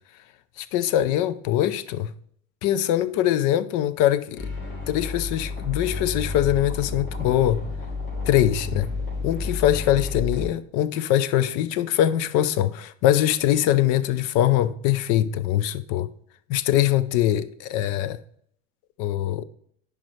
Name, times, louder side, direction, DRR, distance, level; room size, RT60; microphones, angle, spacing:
voice 1, 0.6-2.1 2.6-4.5 4.9-7.6 8.3-8.9 9.2-16.1 16.5-18.2 19.0-19.4, left 12 dB, 50° left, 0.6 m, -22 dB
sound 1, 4.4-10.5, left 3 dB, 75° left, 3.4 m, -31 dB
10.5 x 5.1 x 3.2 m
hypercardioid pair, 75°, 41 cm